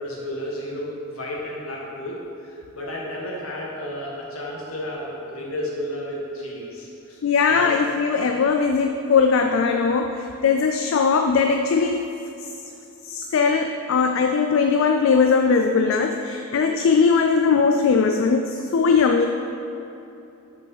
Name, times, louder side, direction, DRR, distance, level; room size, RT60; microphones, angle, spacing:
voice 1, 0.0-7.2 7.5-7.7, left 1 dB, 80° left, -3 dB, 1.6 m, -32 dB
voice 2, 7.2-12.1 12.4-12.5 13.0-19.3, left 5 dB, 65° left, 5 dB, 0.4 m, -20 dB
6.1 x 5.5 x 5.5 m, 2.8 s
head